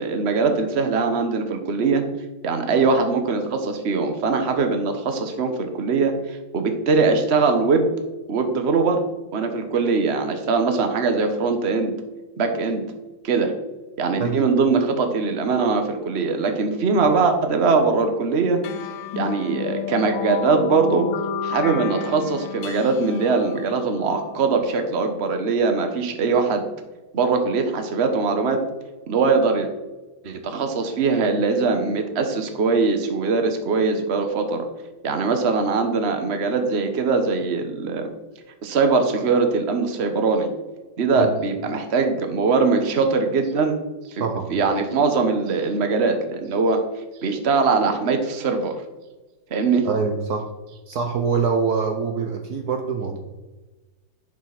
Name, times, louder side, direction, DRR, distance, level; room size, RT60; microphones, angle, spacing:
voice 1, 0.0-2.0 2.4-7.9 8.3-9.0 9.3-11.9 12.4-12.8 13.2-13.5 14.0-18.6 19.2-21.1 21.4-26.6 27.1-28.6 29.1-29.7 30.2-34.7 35.0-38.1 38.6-40.5 41.0-43.8 44.1-46.8 47.2-48.7 49.5-49.9, right 4 dB, 40° right, 6 dB, 1.3 m, -21 dB
sound 1, 18.6-25.5, left 7 dB, 80° left, 1.4 m, -32 dB
voice 2, 44.2-44.5 49.8-50.5 50.9-53.2, right 5 dB, 60° right, 5 dB, 1.4 m, -24 dB
10.5 x 5.2 x 6.0 m, 1.2 s
omnidirectional pair, 2.0 m